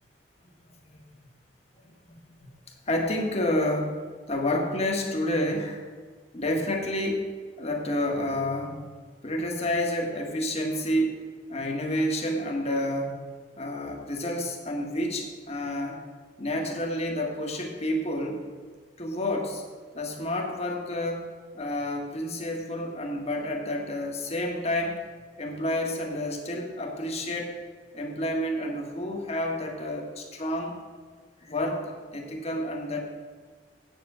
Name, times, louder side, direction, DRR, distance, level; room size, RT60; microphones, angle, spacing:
voice 1, 2.0-2.5 2.9-4.0 4.3-5.8 6.3-7.3 7.6-8.9 9.2-11.2 11.5-13.2 13.5-16.0 16.4-18.4 19.0-19.6 19.9-21.2 21.5-25.0 25.4-27.6 27.9-30.8 31.4-33.0, left 1 dB, 35° left, 2 dB, 1.7 m, -29 dB
8.9 x 7.7 x 7.1 m, 1.5 s
head